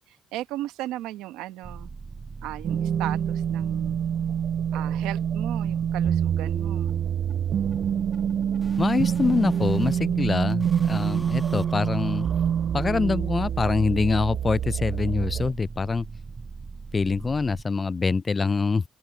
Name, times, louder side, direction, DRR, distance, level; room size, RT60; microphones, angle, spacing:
voice 1, 0.3-1.9 2.4-4.1 4.7-7.0, right 15 dB, 90° right, 1.0 m, -36 dB
sound 1, 1.6-17.6, right 4 dB, 35° right, 4.9 m, -40 dB
sound 2, 2.6-15.5, right 8 dB, 65° right, 0.4 m, -26 dB
sound 3, 4.0-4.1 4.4-4.5 4.8-10.0 10.4-13.2, equal, ahead, 1.2 m, -48 dB
voice 2, 8.8-12.3 12.7-16.1 16.9-18.8, left 4 dB, 35° left, 0.3 m, -25 dB
open air
supercardioid pair, 60°, 0 cm